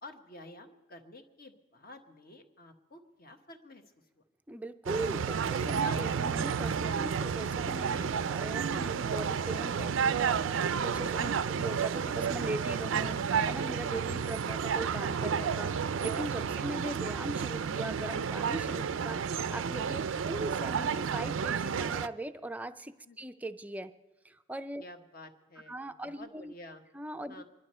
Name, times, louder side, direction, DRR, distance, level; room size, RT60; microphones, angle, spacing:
voice 1, 0.0-3.8 5.8-6.1 7.9-8.1 9.5-9.6 11.2-11.5 13.9-14.4 16.4-16.7 18.7-18.9 19.9-20.1 23.0-23.2 24.8-26.8 27.3-27.4, left 2 dB, 50° left, 6 dB, 1.2 m, -50 dB
voice 2, 4.5-20.0 20.3-23.9 24.2-24.8 25.7-26.5 26.9-27.4, right 1 dB, 10° right, 10 dB, 0.4 m, -40 dB
sound 1, 4.9-22.1, right 6 dB, 80° right, 0.4 m, -31 dB
25.0 x 11.5 x 4.3 m, 1.1 s
head